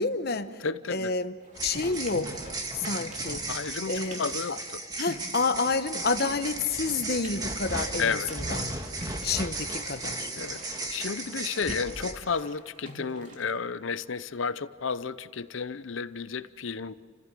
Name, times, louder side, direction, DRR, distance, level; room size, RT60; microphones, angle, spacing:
voice 1, 0.0-0.6 0.9-1.3 1.6-2.3 2.7-3.4 3.9-4.2 4.5-4.6 5.0-8.7 9.2-10.3, left 4 dB, 50° left, 9 dB, 1.1 m, -29 dB
voice 2, 0.6-1.1 3.5-4.8 8.0-8.3 9.0-9.1 10.4-10.6 10.9-16.9, left 5 dB, 70° left, 14 dB, 0.7 m, -32 dB
sound 1, 1.4-13.6, right 1 dB, 40° right, 3.1 m, -46 dB
sound 2, 1.5-12.1, right 2 dB, 20° right, 1.8 m, -35 dB
29.5 x 15.0 x 7.6 m, 2.1 s
head